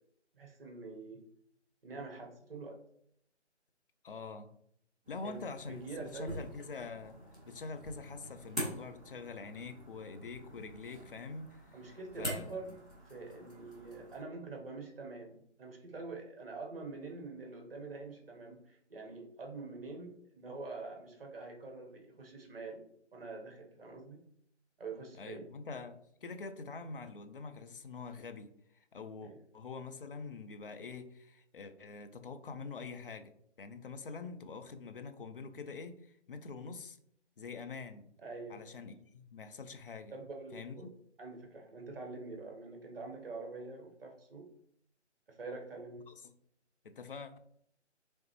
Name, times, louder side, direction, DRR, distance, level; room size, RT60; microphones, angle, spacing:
voice 1, 0.3-1.2 1.8-2.8 5.2-6.4 11.7-12.8 13.0-22.8 23.1-24.2 24.8-25.5 29.2-29.4 38.2-38.6 40.1-40.9 41.2-44.5 45.3-46.0, right 3 dB, 55° right, 1 dB, 1.1 m, -45 dB
voice 2, 4.0-4.5 5.1-7.2 7.5-12.6 25.2-28.5 28.9-33.3 33.6-36.0 36.3-37.0 37.4-38.1 38.5-40.1 40.5-40.9 46.1-46.3 46.8-47.4, left 4 dB, 50° left, 8 dB, 0.5 m, -45 dB
sound 1, 5.0-14.2, equal, 5° right, 0.5 m, -45 dB
3.9 x 3.2 x 3.0 m, 0.69 s
figure-of-eight pair, 155°, 35 cm